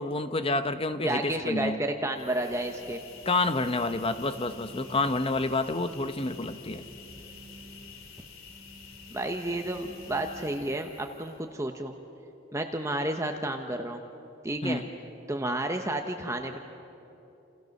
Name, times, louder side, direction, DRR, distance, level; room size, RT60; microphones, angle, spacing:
voice 1, 0.0-1.8 3.2-6.8 14.6-14.9, left 2 dB, 25° left, 10 dB, 1.0 m, -28 dB
voice 2, 1.0-3.0 9.1-11.9 12.5-14.0 14.4-14.8 15.3-16.6, right 1 dB, 15° right, 4 dB, 1.0 m, -31 dB
sound 1, 2.2-11.5, left 3 dB, 75° left, 2.9 m, -47 dB
29.5 x 28.5 x 6.6 m, 3.0 s
head